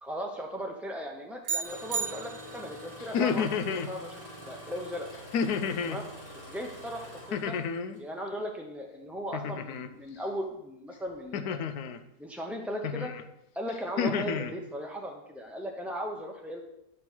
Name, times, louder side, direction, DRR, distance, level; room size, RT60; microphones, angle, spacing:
voice 1, 0.0-5.1 5.8-6.1 6.4-7.6 8.0-11.6 12.2-13.1 13.5-16.6, equal, ahead, 0 dB, 0.4 m, -37 dB
sound 1, 1.4-2.9, right 6 dB, 65° right, 1.2 m, -34 dB
Engine starting, 1.6-8.1 9.0-9.3 9.9-10.3 11.0-11.1, equal, 20° left, 3.0 m, -47 dB
sound 2, 3.0-3.9 5.3-6.0 7.3-8.0 9.3-9.9 11.3-12.0 12.8-13.2 13.7-14.5, left 6 dB, 80° left, 1.1 m, -30 dB
11.0 x 6.1 x 4.5 m, 0.85 s
omnidirectional pair, 1.6 m